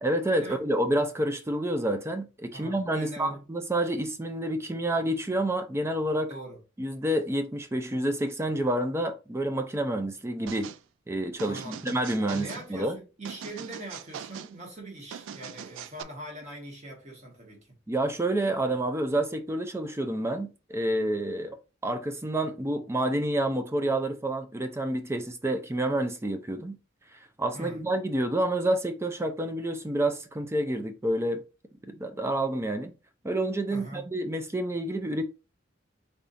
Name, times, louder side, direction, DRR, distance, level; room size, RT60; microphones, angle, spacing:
voice 1, 0.0-6.3 6.8-10.7 11.1-13.0 17.9-21.6 21.8-26.8 27.4-31.4 31.9-32.9 33.2-35.2, right 1 dB, 15° right, 0.4 m, -28 dB
voice 2, 2.5-3.4 6.3-6.6 11.5-11.8 12.3-17.7 27.5-27.8 33.7-34.1, right 1 dB, 40° right, 1.5 m, -42 dB
sound 1, 10.5-10.8 11.4-12.7 13.2-14.5 15.1-16.0, right 8 dB, 85° right, 0.3 m, -41 dB
3.9 x 3.5 x 2.5 m
head